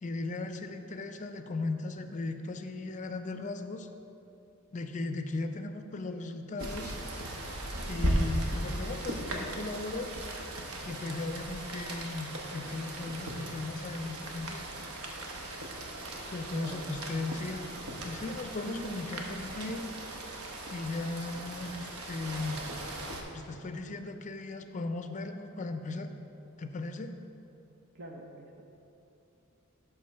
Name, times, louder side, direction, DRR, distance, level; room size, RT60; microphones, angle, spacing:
voice 1, 0.0-3.9 4.7-6.9 7.9-10.1 10.8-14.6 16.3-17.7 18.0-19.9 20.7-22.7 23.3-26.1 26.6-27.1, left 2 dB, 35° left, 8 dB, 0.4 m, -37 dB
Rain, 6.6-23.2, right 1 dB, 85° right, 1.0 m, -37 dB
voice 2, 16.5-16.8 18.7-18.9 27.9-28.6, right 2 dB, 50° right, 1 dB, 0.7 m, -44 dB
10.5 x 3.6 x 5.6 m, 2.8 s
head